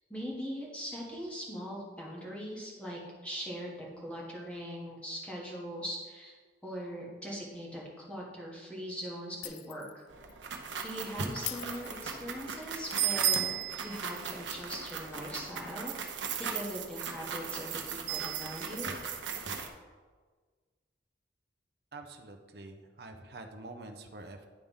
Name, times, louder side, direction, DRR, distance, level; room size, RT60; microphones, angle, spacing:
voice 1, 0.1-6.3 6.6-10.0 10.8-18.9, equal, 5° left, -4 dB, 1.5 m, -41 dB
Shatter, 9.4-10.0 10.3-10.4 11.5-12.5 13.3-14.3, left 14 dB, 65° left, 0.3 m, -42 dB
sound 1, 10.1-19.7, right 8 dB, 90° right, 0.8 m, -36 dB
voice 2, 21.9-24.5, right 2 dB, 60° right, 5 dB, 0.7 m, -46 dB
10.0 x 3.5 x 5.4 m, 1.5 s
head